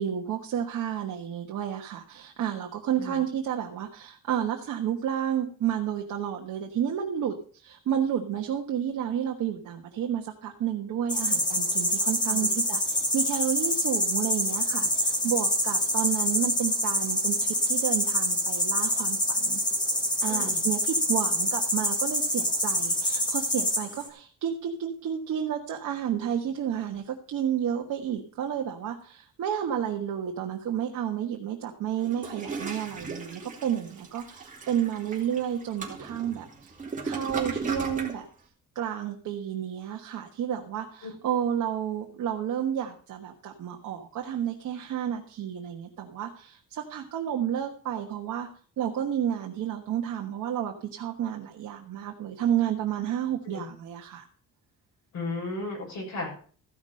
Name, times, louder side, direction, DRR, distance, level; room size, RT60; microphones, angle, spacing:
voice 1, 0.0-19.6 20.2-36.7 37.0-38.3 38.7-48.5 48.8-54.3, right 9 dB, 65° right, 2 dB, 1.4 m, -31 dB
sound 1, 11.1-24.1, equal, 15° left, 2.1 m, -26 dB
voice 2, 20.3-20.6 41.0-41.1 53.4-53.7 55.1-56.3, left 2 dB, 55° left, -1 dB, 6.8 m, -35 dB
Toilet flush, 32.0-38.2, right 4 dB, 25° right, 2.7 m, -36 dB
14.5 x 6.0 x 6.5 m, 0.43 s
cardioid pair, 170°, 33 cm